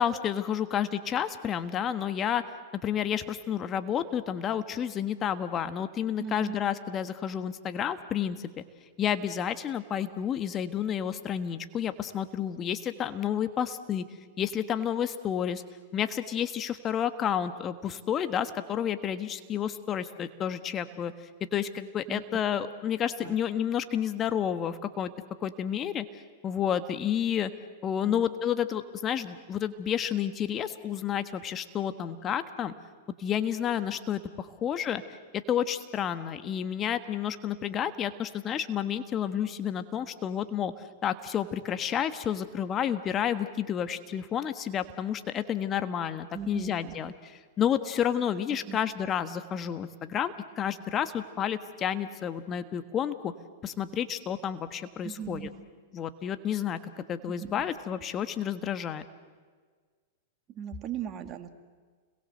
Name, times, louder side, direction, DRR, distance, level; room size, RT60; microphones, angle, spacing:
voice 1, 0.0-2.4 2.8-8.6 9.0-14.0 14.4-15.6 15.9-21.1 21.5-25.1 25.4-26.1 26.4-27.5 27.8-32.7 33.2-35.0 35.3-40.7 41.0-47.1 47.6-53.3 53.6-55.5 55.9-59.0, left 9 dB, 30° left, 10 dB, 1.4 m, -30 dB
voice 2, 6.2-6.6 22.1-22.2 23.2-23.4 28.0-28.2 46.3-46.9 48.7-48.8 55.0-55.5 57.3-57.7 60.5-61.5, right 9 dB, 35° right, 7 dB, 2.3 m, -38 dB
30.0 x 22.0 x 7.9 m, 1.6 s
hypercardioid pair, 105°, 0 cm